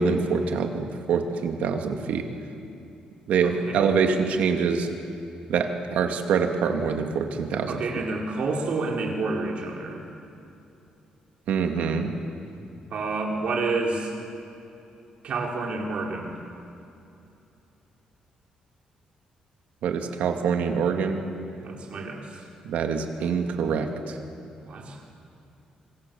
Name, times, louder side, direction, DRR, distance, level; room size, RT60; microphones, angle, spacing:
voice 1, 0.0-2.2 3.3-4.9 5.5-7.8 11.5-12.1 19.8-21.2 22.6-24.1, right 6 dB, 75° right, 4 dB, 2.4 m, -25 dB
voice 2, 3.4-3.8 7.7-10.0 12.9-14.1 15.2-16.4 21.6-22.4 24.7-25.0, right 3 dB, 50° right, 0 dB, 4.5 m, -29 dB
25.5 x 25.0 x 7.2 m, 2.7 s
cardioid pair, 170°, 3 cm